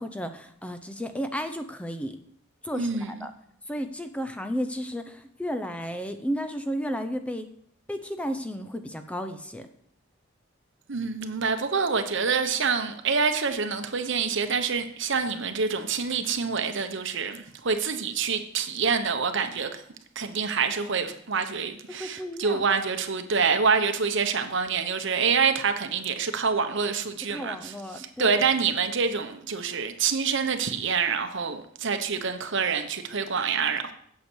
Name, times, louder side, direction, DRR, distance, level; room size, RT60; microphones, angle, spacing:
voice 1, 0.0-2.2 2.6-3.3 3.7-7.5 7.9-9.7 21.9-22.6 27.3-28.4, equal, 5° left, 0.6 m, -33 dB
voice 2, 2.7-3.3 10.9-19.8 20.1-33.9, right 5 dB, 60° right, 1.0 m, -26 dB
8.4 x 8.1 x 6.3 m
head